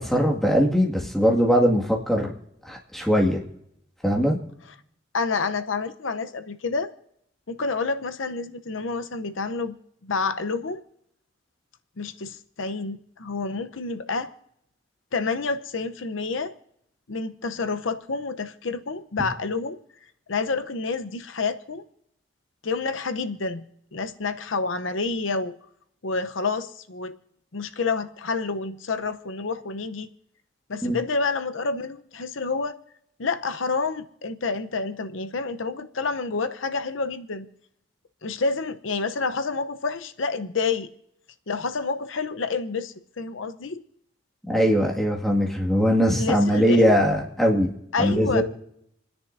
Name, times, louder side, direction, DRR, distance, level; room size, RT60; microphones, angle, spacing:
voice 1, 0.0-2.3 2.7-3.4 4.0-4.4 30.8-31.0 44.5-47.7 48.0-48.4, equal, ahead, -1 dB, 1.9 m, -21 dB
voice 2, 5.1-6.9 7.5-9.8 10.0-10.8 12.0-14.3 15.1-16.5 17.1-19.8 20.3-21.8 22.6-23.6 23.9-25.5 26.0-27.2 27.5-30.1 30.7-32.8 33.2-37.5 38.2-40.9 41.5-43.8 46.2-46.8 47.9-48.4, left 4 dB, 90° left, 10 dB, 0.8 m, -28 dB
29.0 x 10.0 x 2.7 m, 0.73 s
head